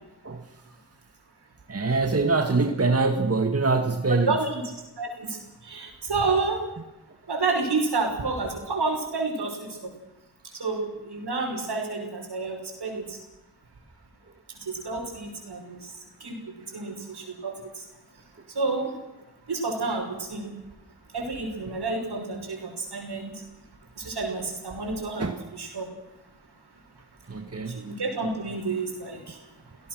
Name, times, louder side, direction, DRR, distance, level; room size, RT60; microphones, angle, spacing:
voice 1, 0.2-0.6 1.7-4.4 25.2-25.4 27.3-27.8, right 3 dB, 35° right, 5 dB, 1.9 m, -24 dB
voice 2, 4.3-4.6 5.0-5.4 5.6-6.6 7.3-9.9 10.6-13.2 14.6-15.9 16.2-16.3 16.7-17.5 18.5-18.9 19.5-20.5 21.1-23.3 24.0-25.9 27.7-29.4, right 3 dB, 70° right, 2 dB, 6.1 m, -29 dB
28.5 x 17.5 x 6.4 m, 1.0 s
cardioid pair, 45°, 41 cm